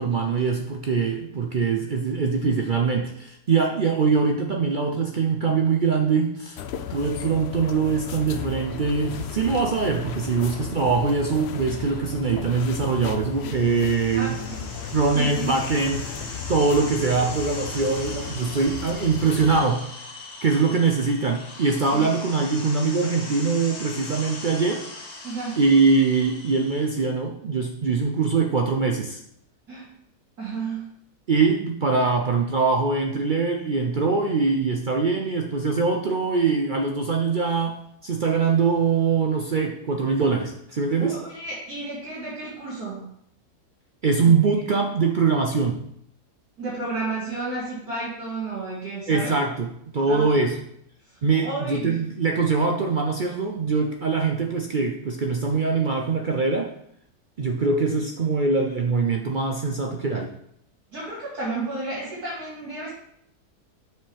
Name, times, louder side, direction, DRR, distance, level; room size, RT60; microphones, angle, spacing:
voice 1, 0.0-6.6 6.9-14.4 14.9-16.1 16.5-19.9 20.4-24.8 25.6-29.2 31.3-37.8 38.0-41.2 44.0-45.8 49.1-50.6 51.2-56.7 57.4-60.3, right 4 dB, 65° right, 3 dB, 0.5 m, -23 dB
sound 1, 6.6-19.6, left 7 dB, 75° left, 0.6 m, -35 dB
sound 2, 13.3-27.1, left 2 dB, 50° left, 1.4 m, -40 dB
voice 2, 14.1-14.6 15.1-15.6 21.9-22.1 25.2-25.6 29.7-29.9 30.4-30.9 41.0-43.1 44.2-44.5 46.6-49.4 50.1-50.3 51.3-52.0 60.9-62.9, right 3 dB, 80° right, -9 dB, 2.7 m, -32 dB
7.4 x 6.1 x 3.4 m, 0.70 s
omnidirectional pair, 1.6 m